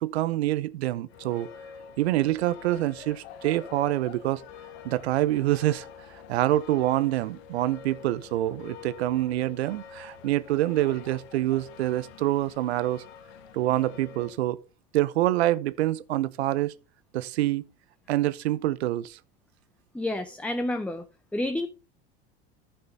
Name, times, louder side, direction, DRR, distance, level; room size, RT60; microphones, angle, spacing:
voice 1, 0.0-1.5 2.0-4.4 4.8-5.9 6.3-13.0 13.5-14.6 14.9-16.7 17.1-17.6 18.1-19.2, right 15 dB, 85° right, 0.6 m, -26 dB
sound 1, 1.1-14.4, left 7 dB, 80° left, 1.1 m, -46 dB
voice 2, 19.9-21.0 21.3-21.7, left 1 dB, 5° left, 0.6 m, -29 dB
11.0 x 6.6 x 4.0 m
hypercardioid pair, 95°, 31 cm